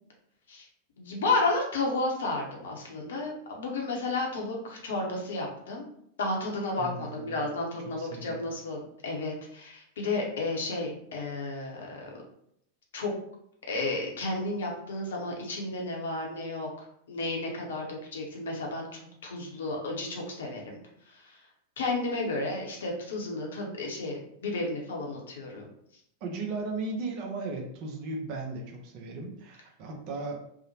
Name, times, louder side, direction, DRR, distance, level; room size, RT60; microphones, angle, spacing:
voice 1, 1.0-5.9 6.2-12.1 12.9-13.1 13.7-16.7 17.1-20.8 21.1-21.4 21.8-25.7, left 2 dB, 60° left, 0 dB, 0.7 m, -32 dB
voice 2, 6.8-7.5 7.9-8.3 26.2-30.5, right 3 dB, 45° right, 1 dB, 0.6 m, -36 dB
2.8 x 2.0 x 2.8 m, 0.71 s
figure-of-eight pair, 90°, 0 cm